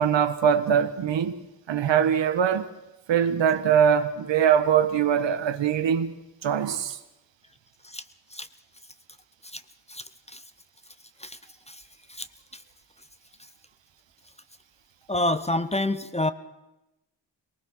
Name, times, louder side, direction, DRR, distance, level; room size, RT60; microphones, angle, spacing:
voice 1, 0.0-1.4 1.7-2.7 3.1-6.1 6.4-7.0, right 8 dB, 75° right, 1.5 m, -22 dB
voice 2, 9.9-10.4 11.2-11.4 11.7-11.8 12.1-12.3 12.5-12.6 15.1-16.3, left 1 dB, 15° left, 0.8 m, -28 dB
22.5 x 19.5 x 6.2 m
cardioid pair, 105°, 45 cm